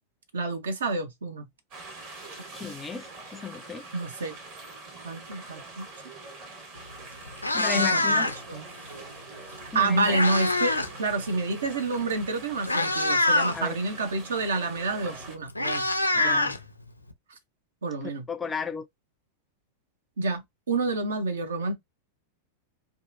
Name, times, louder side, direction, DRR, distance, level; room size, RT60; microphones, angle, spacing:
voice 1, 0.3-1.5 3.9-4.4 5.0-5.8 7.7-8.7 9.7-15.9 16.2-16.4 17.8-18.3 20.2-21.7, right 3 dB, 65° right, 0.7 m, -29 dB
sound 1, 1.7-15.4, right 3 dB, 45° right, 1.3 m, -44 dB
voice 2, 2.5-3.9 7.5-8.3 9.7-10.2 13.5-13.8 16.1-16.5 18.3-18.9, left 6 dB, 15° left, 0.4 m, -33 dB
Meow, 6.8-6.9 7.3-8.6 9.6-11.0 11.2-11.5 12.2-12.3 12.6-13.6 14.9-15.0 15.2-17.1, left 2 dB, 85° left, 0.4 m, -25 dB
2.7 x 2.4 x 2.5 m
figure-of-eight pair, 90°, 0 cm